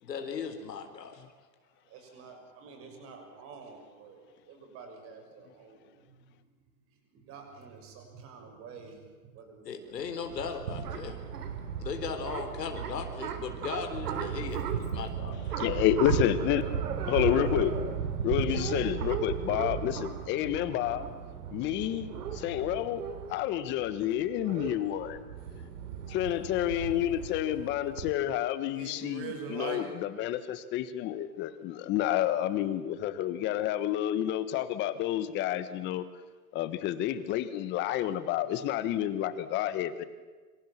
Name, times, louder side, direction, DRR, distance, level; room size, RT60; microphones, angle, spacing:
voice 1, 0.0-1.2 9.7-11.2 11.8-15.3, left 6 dB, 85° left, 5 dB, 4.0 m, -37 dB
voice 2, 1.8-6.4 7.1-10.9 28.7-29.8, right 5 dB, 25° right, 4 dB, 6.4 m, -46 dB
sound 1, 10.0-28.1, right 7 dB, 70° right, 3.8 m, -35 dB
voice 3, 15.6-16.6 17.1-17.7 18.2-21.1 21.5-23.0 23.3-25.2 26.1-29.8 30.2-36.0 36.5-40.0, left 12 dB, 25° left, 13 dB, 1.3 m, -29 dB
26.5 x 25.5 x 7.3 m, 1.3 s
hypercardioid pair, 150°, 48 cm